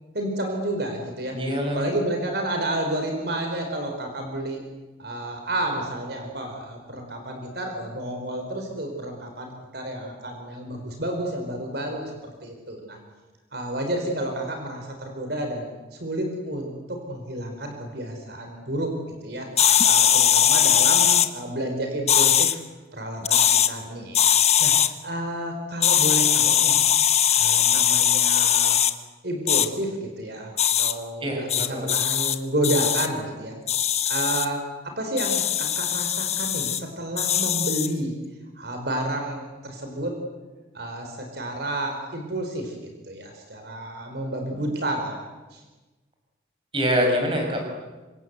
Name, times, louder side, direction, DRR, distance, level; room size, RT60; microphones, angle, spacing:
voice 1, 0.1-1.4 1.7-4.6 5.0-13.0 13.5-22.6 22.9-24.2 24.6-24.7 25.0-26.8 27.3-28.8 29.2-33.6 34.0-38.1 38.5-40.2 40.7-42.7 43.0-45.2 45.5-45.6, right 1 dB, 60° right, 3 dB, 4.5 m, -30 dB
voice 2, 1.3-2.0 31.2-31.7 46.7-47.7, equal, 30° right, 2 dB, 6.4 m, -24 dB
sound 1, 19.6-21.3 22.1-22.5 23.2-23.7 24.1-24.9 25.8-28.9 29.5-29.7 30.6-30.9 31.5-32.4 32.6-33.1 33.7-34.5 35.2-36.8 37.2-37.9, left 9 dB, 35° left, 1.2 m, -20 dB
26.5 x 26.0 x 8.2 m, 1.2 s
head